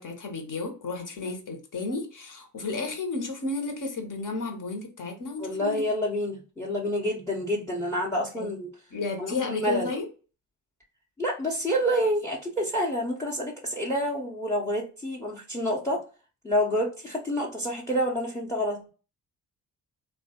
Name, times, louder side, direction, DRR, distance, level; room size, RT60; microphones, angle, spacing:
voice 1, 0.0-5.8 8.4-8.5 8.9-10.1, left 3 dB, 45° left, 1.0 m, -32 dB
voice 2, 5.4-8.7 9.2-9.9 11.2-16.0 16.4-18.8, equal, 5° left, 0.8 m, -28 dB
3.0 x 2.2 x 2.8 m
hypercardioid pair, 40°, 46 cm